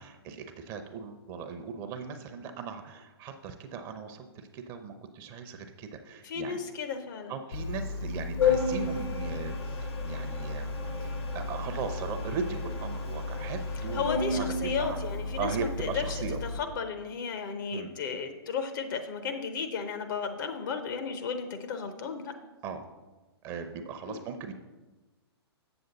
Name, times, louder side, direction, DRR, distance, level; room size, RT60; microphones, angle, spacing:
voice 1, 0.0-6.6 7.3-10.8 11.0-14.0 14.3-15.0 15.4-16.4 17.7-17.9 22.6-22.8 23.4-24.5, right 6 dB, 30° right, 7 dB, 0.7 m, -38 dB
voice 2, 6.2-7.3 13.9-22.3 24.1-24.2, left 6 dB, 50° left, 8 dB, 0.8 m, -34 dB
Organ, 7.5-16.6, left 4 dB, 70° left, 1.1 m, -32 dB
7.7 x 7.0 x 4.0 m, 1.2 s
figure-of-eight pair, 115°, 14 cm